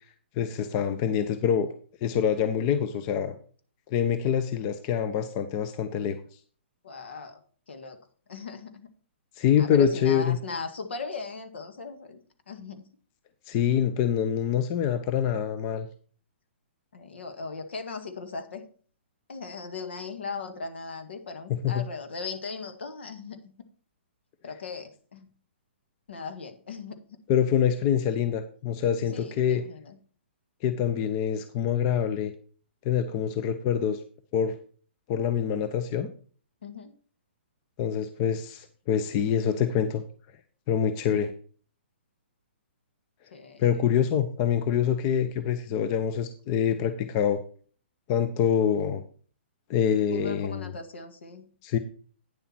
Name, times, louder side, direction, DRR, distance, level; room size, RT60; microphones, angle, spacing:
voice 1, 0.4-1.7 2.0-3.3 3.9-6.2 9.4-10.4 13.5-15.9 21.5-21.8 27.3-29.6 30.6-32.3 32.8-34.0 34.3-34.5 35.1-36.1 37.8-40.0 40.7-41.3 43.6-47.4 48.1-49.0 49.7-50.7 51.6-51.8, left 8 dB, 35° left, 10 dB, 0.7 m, -25 dB
voice 2, 6.8-7.4 7.7-8.0 8.3-8.9 9.6-12.2 12.5-12.9 16.9-18.6 19.3-23.4 24.4-25.3 26.1-27.0 29.1-30.0 36.6-36.9 43.3-43.7 50.1-51.5, left 4 dB, 70° left, 7 dB, 1.8 m, -38 dB
9.6 x 6.9 x 4.4 m, 0.43 s
hypercardioid pair, 130°, 6 cm